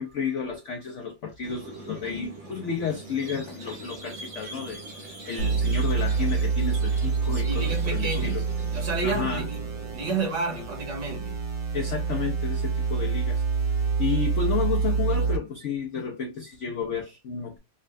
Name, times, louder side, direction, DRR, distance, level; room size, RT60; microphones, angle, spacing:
voice 1, 0.0-8.4 9.0-9.5 11.7-13.4 14.0-17.6, left 6 dB, 80° left, 0.6 m, -32 dB
Squeak, 1.4-10.2, right 2 dB, 90° right, 2.0 m, -42 dB
sound 1, 5.4-15.4, right 5 dB, 45° right, 1.0 m, -27 dB
voice 2, 7.3-8.4 8.7-9.6 9.9-11.4, right 3 dB, 70° right, 2.3 m, -30 dB
5.4 x 2.2 x 2.4 m
omnidirectional pair, 2.0 m